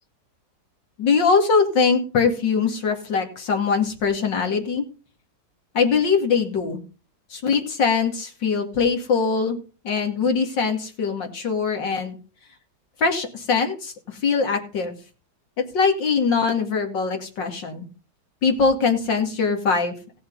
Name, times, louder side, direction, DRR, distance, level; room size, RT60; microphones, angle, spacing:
voice 1, 1.0-4.8 5.7-6.8 7.3-9.6 9.8-12.2 13.0-14.9 15.6-17.9 18.4-19.9, left 5 dB, 80° left, 4 dB, 3.0 m, -22 dB
17.0 x 7.1 x 4.0 m, 0.35 s
omnidirectional pair, 1.9 m